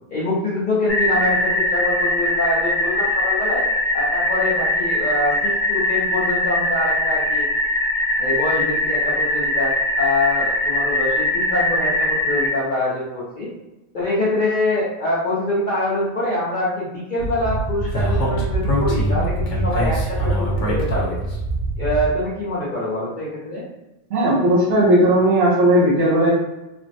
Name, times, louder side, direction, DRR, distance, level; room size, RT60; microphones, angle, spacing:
voice 1, 0.1-3.6 3.9-7.5 8.2-13.5 13.9-21.2 21.8-23.6, left 1 dB, 50° left, -8 dB, 0.8 m, -24 dB
sound 1, 0.9-12.5, left 1 dB, 15° left, 0.5 m, -21 dB
Speech, 17.2-22.1, right 1 dB, 90° left, 1.1 m, -23 dB
voice 2, 24.1-26.3, right 1 dB, 65° right, -6 dB, 1.0 m, -16 dB
3.3 x 2.0 x 2.6 m, 1.0 s
omnidirectional pair, 1.2 m